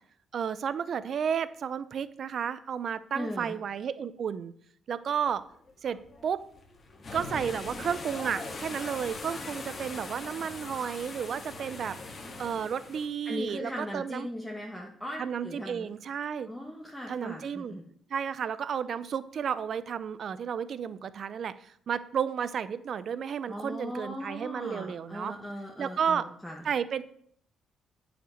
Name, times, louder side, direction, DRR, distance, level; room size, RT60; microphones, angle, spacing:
voice 1, 0.3-4.5 4.9-5.4 5.8-6.4 7.1-12.0 12.4-14.3 15.2-16.5 17.1-17.8 18.1-25.3 25.8-26.3 26.6-27.0, right 7 dB, 55° right, 15 dB, 0.5 m, -32 dB
voice 2, 3.1-3.6 13.2-15.9 16.5-17.8 23.5-26.6, equal, ahead, -3 dB, 1.4 m, -38 dB
sound 1, 5.4-13.1, left 3 dB, 40° left, 1.8 m, -41 dB
9.0 x 5.1 x 6.5 m, 0.65 s
cardioid pair, 90°, 0 cm